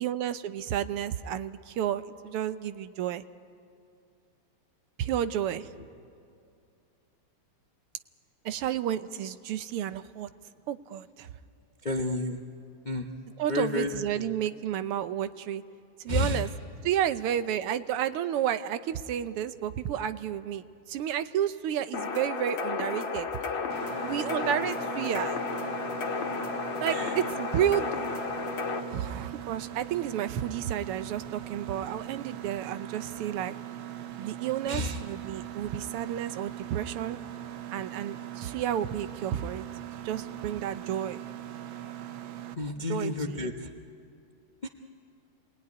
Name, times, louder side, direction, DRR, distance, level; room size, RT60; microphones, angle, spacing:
voice 1, 0.0-3.2 5.0-5.7 8.5-10.3 10.7-11.3 13.4-15.6 16.0-16.5 16.8-23.3 24.0-25.4 26.8-27.9 28.9-33.5 34.2-37.2 37.7-39.7 40.0-41.2 42.9-43.5, right 10 dB, 85° right, 12 dB, 1.7 m, -31 dB
voice 2, 11.8-12.4 12.8-13.1 13.5-14.2 16.1-16.4 26.9-27.2 34.7-35.0 42.6-43.7 44.6-44.7, left 2 dB, 45° left, 3 dB, 0.6 m, -31 dB
sound 1, 21.9-28.8, left 5 dB, 65° left, 2.4 m, -33 dB
Mechanisms, 23.7-42.5, right 12 dB, 70° right, 1.6 m, -41 dB
28.0 x 20.5 x 9.6 m, 2.5 s
omnidirectional pair, 2.4 m